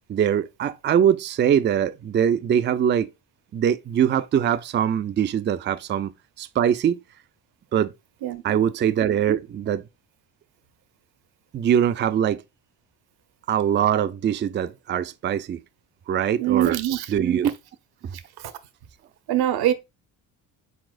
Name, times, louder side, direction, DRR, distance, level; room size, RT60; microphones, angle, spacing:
voice 1, 0.1-3.1 3.5-6.1 6.4-7.0 7.7-7.9 8.4-9.8 11.5-12.4 13.5-15.6 16.1-16.8 17.1-17.5 18.0-18.2, right 9 dB, 30° right, 0.4 m, -22 dB
voice 2, 8.2-8.6 16.4-17.1 18.4-18.5 19.3-19.7, right 12 dB, 65° right, 0.8 m, -23 dB
4.2 x 4.1 x 2.5 m
supercardioid pair, 65°, 41 cm